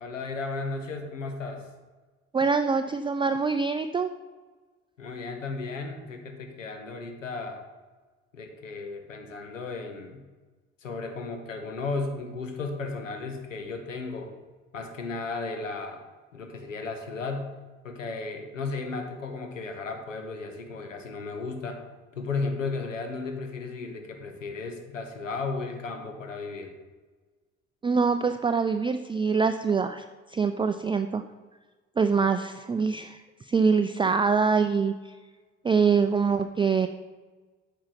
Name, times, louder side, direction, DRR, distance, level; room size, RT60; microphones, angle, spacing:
voice 1, 0.0-1.7 5.0-7.6 8.3-10.2 10.8-14.3 14.7-16.0 16.3-17.4 17.8-21.8 22.1-26.7, left 3 dB, 90° left, 5 dB, 0.9 m, -34 dB
voice 2, 2.3-4.1 27.8-31.2 32.0-35.1 35.6-36.9, right 5 dB, 15° right, 8 dB, 0.4 m, -24 dB
8.6 x 5.5 x 5.7 m, 1.3 s
figure-of-eight pair, 50°, 38 cm